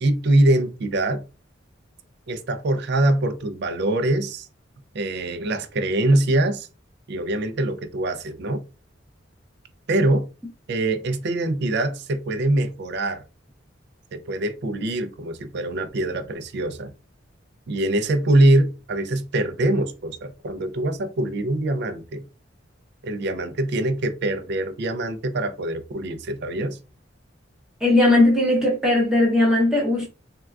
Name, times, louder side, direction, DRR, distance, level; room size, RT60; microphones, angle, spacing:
voice 1, 0.0-1.2 2.3-4.5 4.9-6.7 7.1-8.6 9.9-10.3 10.7-13.2 14.1-16.9 17.7-22.2 23.0-26.8, right 1 dB, 60° right, 0.4 m, -23 dB
voice 2, 27.8-30.1, left 2 dB, 5° right, 0.7 m, -18 dB
3.5 x 2.2 x 2.3 m
head